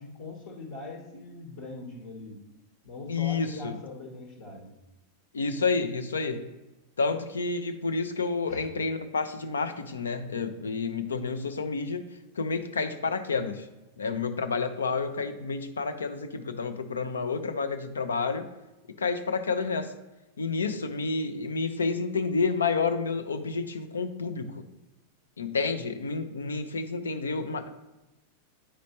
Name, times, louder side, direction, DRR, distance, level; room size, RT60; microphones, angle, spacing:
voice 1, 0.0-2.4 2.8-4.7 8.4-8.7 20.6-20.7, left 3 dB, 55° left, 0 dB, 1.1 m, -41 dB
voice 2, 3.1-3.7 5.3-6.5 7.0-12.0 12.4-13.7 14.0-18.5 19.0-19.9 20.4-24.6 25.4-27.7, left 4 dB, 70° left, 9 dB, 0.5 m, -29 dB
8.7 x 5.1 x 2.9 m, 1.0 s
figure-of-eight pair, 90°, 0 cm